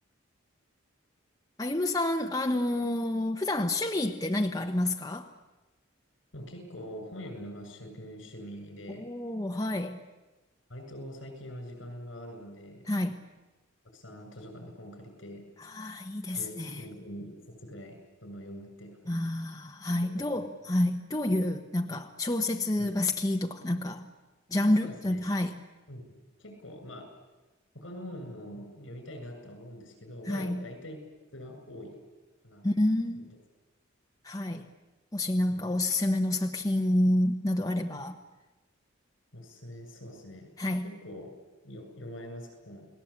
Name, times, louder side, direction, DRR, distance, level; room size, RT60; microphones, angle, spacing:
voice 1, 1.6-5.3 9.0-10.0 12.8-13.2 15.6-16.8 19.1-24.1 24.5-25.6 30.3-30.6 32.6-33.3 34.2-34.7 35.1-38.2 40.6-40.9, left 1 dB, 20° left, 3 dB, 0.9 m, -29 dB
voice 2, 6.3-9.1 10.7-12.9 13.8-15.4 16.3-19.2 20.0-20.5 22.8-23.0 24.6-25.2 25.9-27.1 27.7-31.0 31.3-31.9 32.4-32.7 33.1-33.3 35.5-35.7 39.3-40.5 40.8-41.3 41.6-42.9, equal, 70° left, 6 dB, 7.4 m, -44 dB
29.0 x 19.5 x 8.7 m, 1.1 s
head